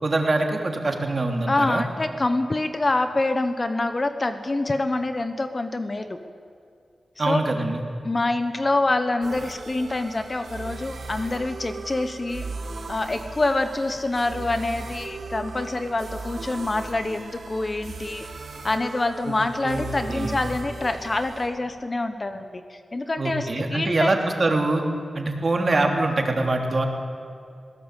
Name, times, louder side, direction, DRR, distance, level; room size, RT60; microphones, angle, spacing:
voice 1, 0.0-1.8 7.2-7.8 19.2-19.4 19.6-20.4 23.2-24.8 25.1-26.8, right 2 dB, 45° right, 3 dB, 3.2 m, -24 dB
voice 2, 1.5-6.2 7.3-7.4 8.0-12.4 12.9-18.2 18.6-24.1, left 2 dB, 35° left, 9 dB, 1.2 m, -26 dB
sound 1, 9.2-21.5, right 3 dB, 75° right, 2.5 m, -37 dB
21.0 x 17.5 x 8.4 m, 2.5 s
cardioid pair, 65°, 0 cm